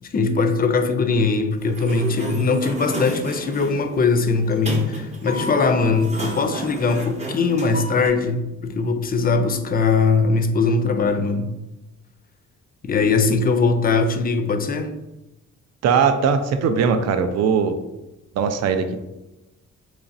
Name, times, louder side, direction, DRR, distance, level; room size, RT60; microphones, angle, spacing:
voice 1, 0.0-11.5 12.8-14.9, left 4 dB, 30° left, 8 dB, 0.4 m, -21 dB
Sliding door, 1.6-8.1, equal, 20° right, 0.7 m, -32 dB
voice 2, 15.8-17.8 18.4-19.0, right 6 dB, 60° right, 9 dB, 0.4 m, -20 dB
3.9 x 3.1 x 2.6 m, 0.98 s
cardioid pair, 90°, 30 cm